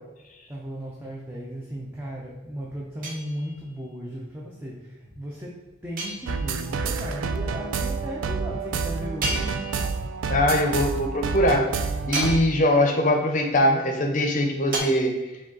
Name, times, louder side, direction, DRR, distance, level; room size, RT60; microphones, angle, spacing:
voice 1, 0.1-9.7, equal, 10° right, -5 dB, 0.5 m, -36 dB
sound 1, 3.0-3.8 6.0-6.7 9.2-10.1 12.1-12.9 14.7-14.8, right 2 dB, 45° right, 0.7 m, -33 dB
sound 2, 6.3-12.4, right 5 dB, 70° right, 0.3 m, -29 dB
voice 2, 10.3-11.7 12.1-15.1, left 1 dB, 40° left, 3 dB, 0.6 m, -21 dB
4.9 x 2.3 x 3.8 m, 1.1 s
head